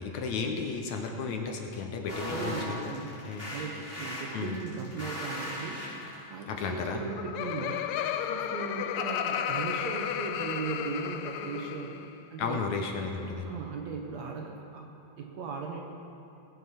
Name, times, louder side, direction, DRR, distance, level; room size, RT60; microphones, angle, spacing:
voice 1, 0.0-2.9 3.2-3.5 4.3-4.6 6.5-7.0 12.4-13.5, left 4 dB, 70° left, 3 dB, 2.0 m, -33 dB
sound 1, 2.1-6.3, left 1 dB, 15° left, 3.6 m, -38 dB
voice 2, 2.2-3.1 3.5-5.8 6.3-7.9 8.2-12.0 12.3-12.7 13.5-15.8, right 5 dB, 70° right, 1 dB, 1.9 m, -38 dB
Laughter, 6.9-12.1, left 9 dB, 85° left, 2.2 m, -33 dB
19.0 x 7.9 x 5.7 m, 2.8 s
omnidirectional pair, 3.8 m